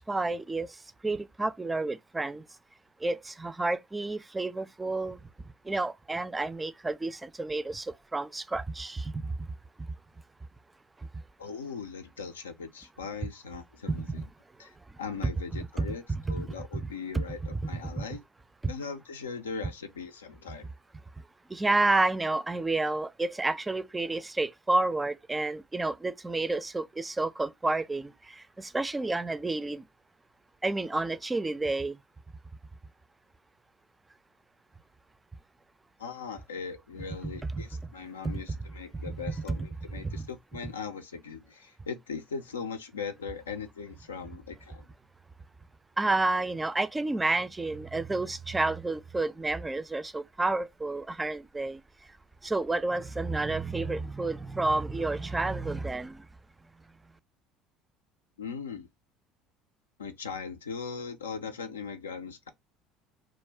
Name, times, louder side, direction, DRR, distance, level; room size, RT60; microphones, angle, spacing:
voice 1, 0.0-2.4 3.0-5.2 5.6-9.5 13.9-14.3 15.2-16.5 16.7-16.9 17.1-17.2 17.5-18.1 18.6-18.7 21.5-29.8 30.6-32.0 37.4-37.7 38.2-38.4 39.1-39.2 39.5-39.6 40.0-40.3 46.0-51.8 52.4-56.3, right 2 dB, 15° right, 0.4 m, -30 dB
voice 2, 11.4-14.2 14.6-18.2 18.7-20.7 36.0-44.9 58.4-58.9 60.0-62.5, left 5 dB, 90° left, 0.4 m, -39 dB
2.3 x 2.1 x 3.3 m
hypercardioid pair, 70°, 0 cm